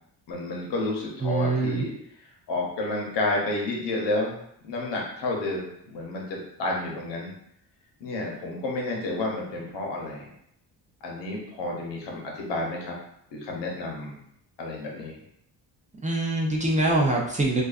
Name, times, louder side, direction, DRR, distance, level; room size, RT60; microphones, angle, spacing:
voice 1, 0.3-1.9 2.5-4.4 4.6-7.3 8.0-10.3 11.0-13.0 13.3-14.2 14.6-15.2, left 2 dB, 80° left, -1 dB, 0.8 m, -30 dB
voice 2, 1.2-1.9 16.0-17.6, right 2 dB, 20° right, -2 dB, 0.5 m, -24 dB
2.4 x 2.3 x 2.3 m, 0.74 s
cardioid pair, 80°, 42 cm